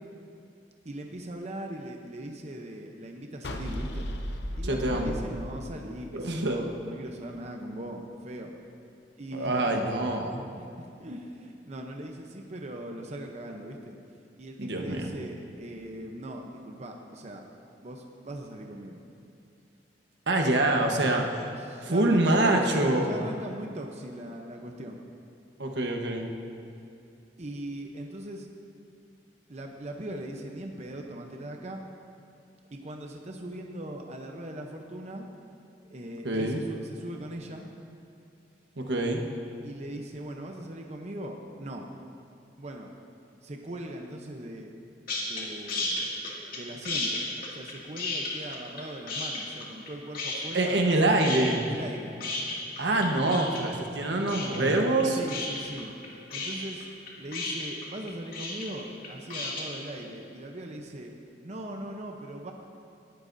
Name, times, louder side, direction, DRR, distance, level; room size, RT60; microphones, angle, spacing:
voice 1, 0.8-4.1 4.6-8.5 9.2-9.8 10.6-14.0 14.4-17.4 17.8-19.0 21.2-21.3 21.6-22.7 23.1-25.0 27.4-28.5 29.5-31.8 32.7-35.3 35.8-37.7 39.6-41.9 42.6-42.9 43.4-44.7 45.2-46.1 46.5-47.2 47.5-50.9 51.7-52.1 55.2-55.9 56.3-56.9 57.2-61.2 61.4-62.5, right 1 dB, 40° right, 2 dB, 0.8 m, -40 dB
sound 1, 3.4-6.7, left 1 dB, 75° left, 0.9 m, -35 dB
voice 2, 4.6-5.2 6.1-6.6 9.3-10.4 14.6-15.1 20.3-21.2 21.8-23.1 25.6-26.3 36.2-36.6 38.8-39.2 50.5-51.6 52.8-55.2, right 2 dB, 85° right, 2 dB, 1.2 m, -25 dB
sound 2, 45.1-45.4 45.7-46.6 46.8-48.8 49.1-49.9 50.1-50.9 51.2-59.6, left 3 dB, 55° left, 2.4 m, -33 dB
18.5 x 12.5 x 2.7 m, 2.6 s
head